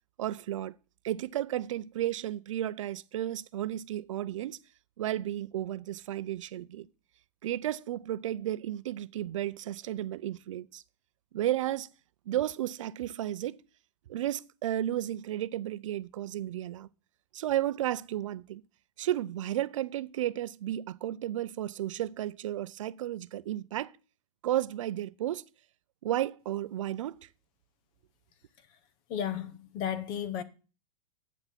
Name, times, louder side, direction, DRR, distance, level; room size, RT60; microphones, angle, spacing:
voice 1, 0.2-0.7 1.0-4.6 5.0-6.9 7.4-10.8 11.3-11.9 12.3-13.6 14.1-16.9 17.3-18.6 19.0-23.9 24.4-25.4 26.0-27.3, right 13 dB, 65° right, 0.5 m, -33 dB
voice 2, 29.1-30.4, left 9 dB, 25° left, 0.6 m, -34 dB
8.1 x 5.7 x 5.8 m
supercardioid pair, 165°, 18 cm